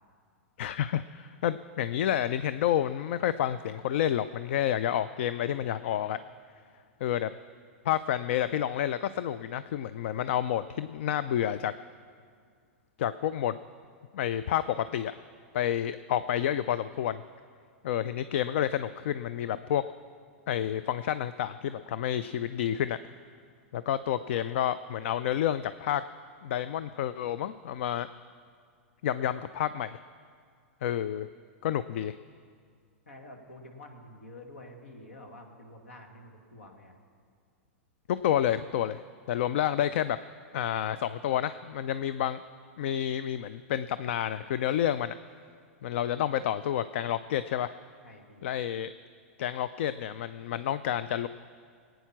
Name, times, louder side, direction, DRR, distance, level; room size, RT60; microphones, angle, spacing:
voice 1, 0.6-6.2 7.0-7.3 7.8-11.7 13.0-13.6 14.1-15.1 15.5-17.2 17.8-19.8 20.5-23.0 23.7-26.0 26.4-28.1 29.0-30.0 30.8-31.3 31.6-32.1 38.1-39.0 39.3-40.2 40.5-42.4 42.8-45.2 45.8-47.7 48.4-48.9 49.4-51.3, left 10 dB, 65° left, 14 dB, 0.4 m, -29 dB
voice 2, 33.1-37.0 48.0-48.5, left 1 dB, 80° left, 2 dB, 2.2 m, -49 dB
20.0 x 9.2 x 5.9 m, 2.1 s
hypercardioid pair, 110°, 7 cm